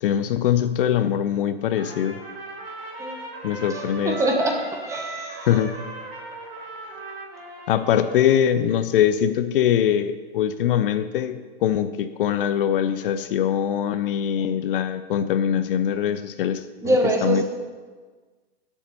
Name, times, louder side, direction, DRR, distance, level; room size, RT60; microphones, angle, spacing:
voice 1, 0.0-2.2 3.4-4.2 5.5-5.7 7.7-17.0 17.2-17.4, left 9 dB, 55° left, 11 dB, 0.6 m, -22 dB
Trumpet, 1.7-8.5, right 3 dB, 65° right, 2.5 m, -37 dB
voice 2, 3.7-5.5 14.4-14.5 16.8-17.4, right 1 dB, 10° right, 2 dB, 1.1 m, -24 dB
7.1 x 7.1 x 6.7 m, 1.4 s
hypercardioid pair, 135°, 32 cm